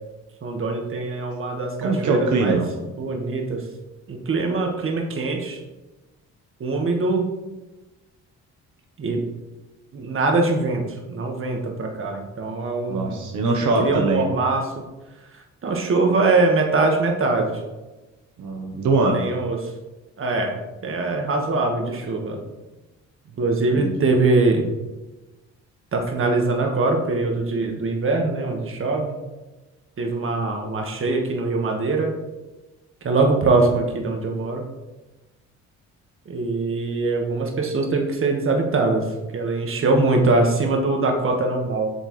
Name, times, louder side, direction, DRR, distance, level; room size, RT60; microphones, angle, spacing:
voice 1, 0.4-2.6 3.0-3.6 4.1-5.6 6.6-7.3 9.0-9.2 9.9-10.8 11.1-13.3 13.8-14.8 15.6-17.5 19.1-19.6 20.2-20.5 20.8-22.4 23.4-24.7 25.9-29.1 30.0-32.1 33.0-34.6 36.3-39.0 39.3-41.9, right 3 dB, 45° right, 2 dB, 1.6 m, -22 dB
voice 2, 1.8-2.7 12.9-14.3 18.4-19.2 23.7-23.9, right 3 dB, 75° right, 1 dB, 1.1 m, -22 dB
8.3 x 6.5 x 3.2 m, 1.1 s
cardioid pair, 90°, 30 cm